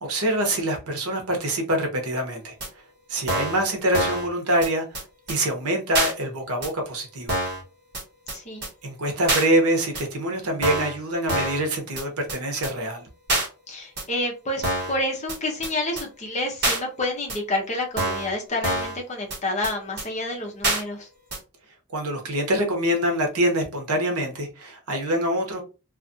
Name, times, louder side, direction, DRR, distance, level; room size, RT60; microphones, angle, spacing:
voice 1, 0.0-2.5 3.1-4.9 5.3-7.4 8.8-13.0 21.9-25.6, right 1 dB, 80° right, 0.8 m, -25 dB
sound 1, 2.6-2.7 3.3-3.6 3.9-4.3 4.6-4.7 4.9-5.0 5.3-5.4 5.9-6.1 6.6-6.7 7.3-7.6 7.9-8.0 8.3-8.4 8.6-8.7 9.3-9.5 10.0-10.1 10.6-11.0 11.3-11.6 12.0-12.1 12.3-12.4 12.6-12.7 13.3-13.5 14.0-14.1 14.6-15.0 15.3-15.4 15.6-15.7 16.0-16.1 16.6-16.8 17.3-17.4 18.0-18.3 18.6-19.0 19.3-19.4 19.6-19.7 20.0-20.1 20.6-20.8 21.3-21.4, right 2 dB, 45° right, 1.2 m, -25 dB
voice 2, 8.3-8.6 13.7-21.1, left 1 dB, 30° left, 0.7 m, -29 dB
2.4 x 2.4 x 2.6 m
head